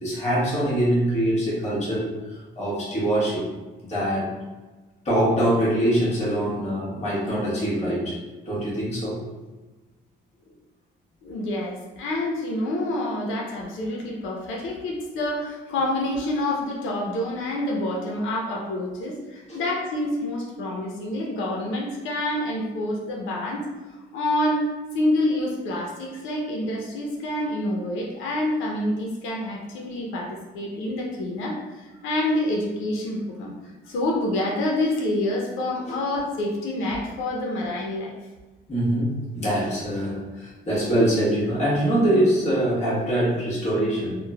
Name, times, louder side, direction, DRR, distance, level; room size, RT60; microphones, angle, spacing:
voice 1, 0.0-3.5 3.8-4.4 5.0-8.2 8.4-9.3 19.5-19.6 35.9-36.0 38.7-44.2, right 1 dB, 35° left, -8 dB, 1.2 m, -24 dB
voice 2, 11.2-23.6 24.1-24.7 24.9-33.5 33.9-38.1, left 1 dB, 80° left, -1 dB, 0.5 m, -27 dB
3.0 x 2.0 x 2.2 m, 1.2 s
cardioid pair, 90°, 20 cm